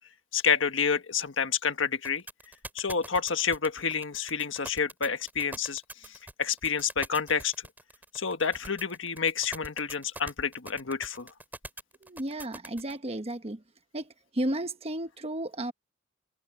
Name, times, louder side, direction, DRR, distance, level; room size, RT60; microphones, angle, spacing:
voice 1, 0.3-2.2 2.7-7.5 8.1-11.3, left 6 dB, 80° left, 1.5 m, -29 dB
sound 1, 2.0-12.9, right 2 dB, 10° right, 3.8 m, -43 dB
voice 2, 12.0-13.6 13.9-14.1 14.3-15.7, right 1 dB, 30° right, 1.2 m, -33 dB
head